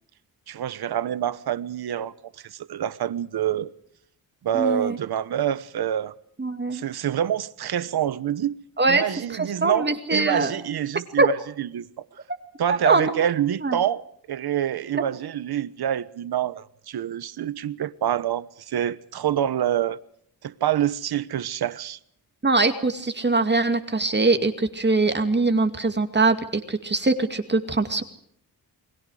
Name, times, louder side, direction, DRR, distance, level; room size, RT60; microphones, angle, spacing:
voice 1, 0.5-2.1 2.4-3.7 4.4-6.1 6.7-8.5 8.9-11.9 12.6-14.0 14.3-20.0 20.4-22.0, right 10 dB, 70° right, 1.2 m, -26 dB
voice 2, 4.5-5.0 6.4-6.8 8.8-9.0 9.3-10.5 11.2-11.3 12.7-13.1 13.6-13.8 14.9-15.0 22.4-28.0, right 3 dB, 25° right, 2.4 m, -22 dB
30.0 x 21.0 x 5.0 m
cardioid pair, 90°, 39 cm